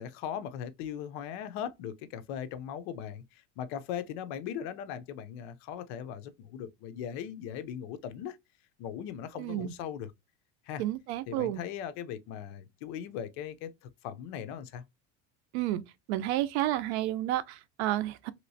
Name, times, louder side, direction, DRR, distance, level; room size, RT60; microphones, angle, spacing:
voice 1, 0.0-8.4 8.8-10.1 10.7-10.8 11.3-13.7 14.0-14.8, left 9 dB, 65° left, 0.6 m, -39 dB
voice 2, 9.4-9.7 10.8-11.6 15.5-15.8 16.1-18.3, right 14 dB, 85° right, 0.5 m, -31 dB
3.1 x 2.9 x 2.6 m
cardioid pair, 150°, 32 cm